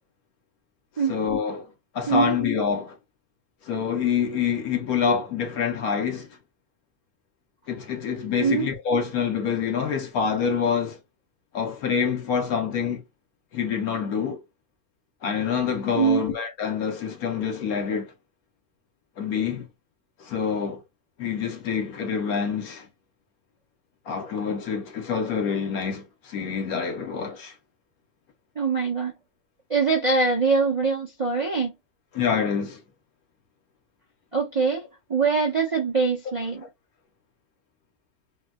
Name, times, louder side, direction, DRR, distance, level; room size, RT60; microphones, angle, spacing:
voice 1, 1.1-1.7 1.9-3.0 3.6-6.3 7.7-11.0 11.5-13.0 13.5-14.4 15.2-18.1 19.2-19.7 20.2-20.8 21.2-22.9 24.1-27.5 32.1-32.8, left 6 dB, 70° left, 1.3 m, -26 dB
voice 2, 15.9-16.3 28.6-29.1 29.7-31.7 34.3-34.8 35.1-36.6, right 5 dB, 40° right, 0.5 m, -23 dB
4.3 x 2.2 x 2.2 m
omnidirectional pair, 1.6 m